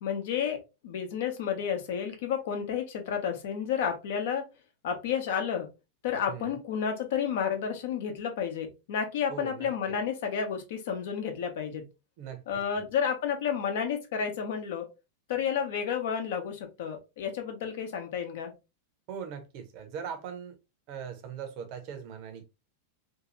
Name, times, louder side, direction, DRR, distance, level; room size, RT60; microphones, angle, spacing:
voice 1, 0.0-4.5 4.8-5.7 6.0-11.8 12.5-14.9 15.3-18.5, left 7 dB, 55° left, 0.7 m, -31 dB
voice 2, 6.3-6.6 9.3-10.0 12.2-12.4 19.1-20.6 20.9-22.4, right 7 dB, 45° right, 0.7 m, -40 dB
2.7 x 2.4 x 2.9 m
figure-of-eight pair, 90°, 0 cm